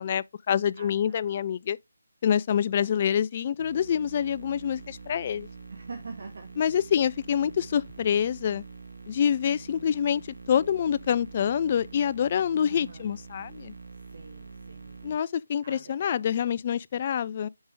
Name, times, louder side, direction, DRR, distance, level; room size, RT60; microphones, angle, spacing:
voice 1, 0.0-1.8 2.2-5.5 6.6-8.6 9.1-10.2 10.5-13.7 15.0-17.5, left 8 dB, 35° left, 0.3 m, -26 dB
voice 2, 0.8-1.2 2.7-3.1 5.7-6.5 7.4-7.6 12.6-13.1 14.1-15.0 15.6-16.3, right 4 dB, 55° right, 1.4 m, -45 dB
sound 1, 3.6-15.1, right 4 dB, 80° right, 2.3 m, -45 dB
6.3 x 5.0 x 3.3 m
figure-of-eight pair, 150°, 0 cm